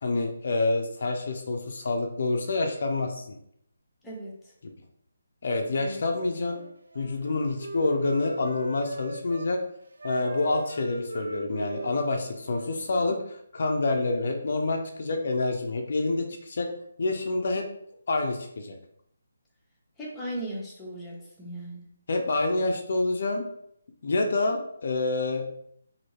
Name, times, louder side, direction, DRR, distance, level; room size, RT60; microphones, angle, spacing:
voice 1, 0.0-3.4 5.4-6.6 6.9-9.6 10.0-16.7 17.0-17.7 18.1-18.8 22.1-23.5 24.0-25.4, left 2 dB, 60° left, 3 dB, 0.5 m, -27 dB
voice 2, 4.0-4.5 5.8-6.0 20.0-21.8, right 1 dB, 5° left, -6 dB, 0.9 m, -37 dB
Wind instrument woodwind instrument, 6.4-9.5 10.0-13.1, right 2 dB, 80° right, 0.5 m, -41 dB
2.8 x 2.7 x 3.0 m, 0.71 s
figure-of-eight pair, 155°, 0 cm